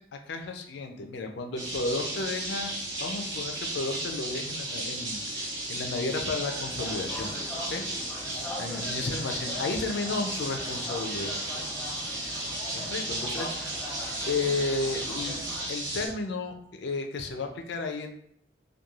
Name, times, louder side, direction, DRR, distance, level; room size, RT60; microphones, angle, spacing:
voice 1, 0.0-2.7 3.0-7.3 7.7-7.8 8.6-11.4 12.7-13.7 14.3-15.4 15.7-18.1, left 3 dB, 65° left, 4 dB, 0.4 m, -33 dB
sound 1, 1.6-16.1, right 1 dB, 85° right, 0.9 m, -34 dB
sound 2, 6.4-15.7, left 1 dB, 5° left, 0.7 m, -41 dB
3.0 x 2.2 x 2.3 m, 0.69 s
head